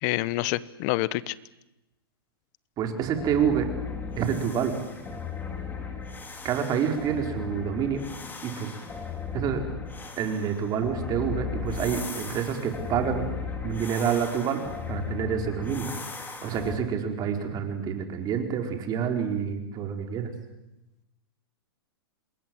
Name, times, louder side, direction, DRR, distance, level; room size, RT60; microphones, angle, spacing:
voice 1, 0.0-1.3, left 18 dB, 45° left, 19 dB, 1.1 m, -27 dB
voice 2, 2.8-3.7 4.2-4.8 6.4-8.0 8.4-8.7 9.3-9.7 10.2-13.3 13.6-20.3, right 7 dB, 30° right, 4 dB, 4.6 m, -28 dB
sound 1, 3.1-16.8, left 6 dB, 15° left, 4.0 m, -37 dB
27.5 x 21.5 x 7.9 m, 0.93 s
hypercardioid pair, 130°, 13 cm